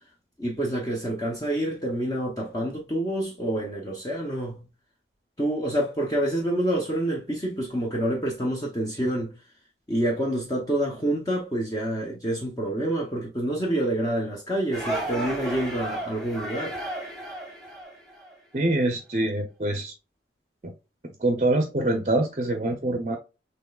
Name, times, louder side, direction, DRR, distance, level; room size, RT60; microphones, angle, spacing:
voice 1, 0.4-4.6 5.4-9.3 9.9-16.8, right 1 dB, 20° left, 0.8 m, -27 dB
sound 1, 14.7-18.3, right 1 dB, 5° left, 1.2 m, -33 dB
voice 2, 18.5-19.9 20.6-20.7 21.2-23.2, right 2 dB, 40° right, 0.6 m, -25 dB
6.0 x 3.3 x 2.3 m
head